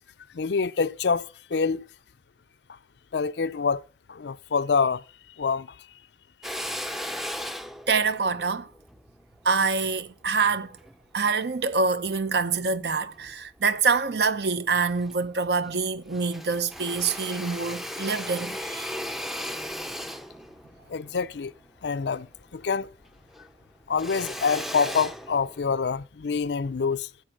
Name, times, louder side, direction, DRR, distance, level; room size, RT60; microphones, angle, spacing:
voice 1, 0.3-1.9 3.1-3.8 4.1-5.0 5.4-5.8 20.9-21.5 21.8-22.3 22.5-22.9 23.9-27.1, left 5 dB, 70° left, 0.5 m, -26 dB
Drill, 6.4-11.0 11.5-12.7 13.2-14.1 14.5-14.6 14.8-22.8 23.0-25.9, equal, ahead, 0.5 m, -37 dB
voice 2, 7.9-8.7 9.4-10.8 11.1-18.9, right 4 dB, 65° right, 0.8 m, -26 dB
10.5 x 8.0 x 7.6 m
head